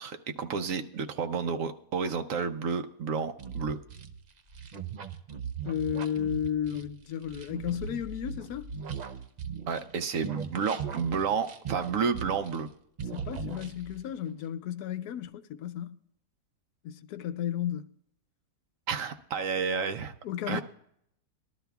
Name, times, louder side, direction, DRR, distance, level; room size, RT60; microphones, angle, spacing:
voice 1, 0.0-3.8 9.7-12.7 18.9-20.1 20.5-20.6, right 6 dB, 65° right, 1.0 m, -31 dB
sound 1, 3.4-9.9 10.2-12.7 13.0-14.1, right 6 dB, 85° right, 0.3 m, -39 dB
voice 2, 5.6-8.7 13.1-16.0 16.8-17.9 20.2-20.6, left 10 dB, 80° left, 1.2 m, -33 dB
19.5 x 12.0 x 2.3 m
omnidirectional pair, 1.6 m